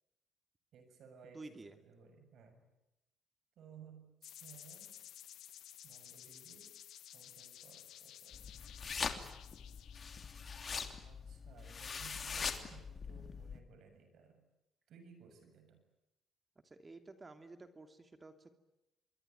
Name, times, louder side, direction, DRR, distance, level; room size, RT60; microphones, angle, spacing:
voice 1, 0.7-2.6 3.6-5.0 5.8-6.7 7.1-8.6 11.0-14.4 14.9-15.8, right 6 dB, 70° right, 8 dB, 7.4 m, -59 dB
voice 2, 1.3-1.8 16.6-18.5, right 3 dB, 25° right, 8 dB, 2.8 m, -52 dB
sound 1, 4.2-10.9, left 11 dB, 80° left, 1.8 m, -55 dB
sound 2, 8.3-13.6, left 5 dB, 45° left, 3.1 m, -42 dB
26.5 x 22.0 x 9.4 m, 0.92 s
cardioid pair, 90°, 0 cm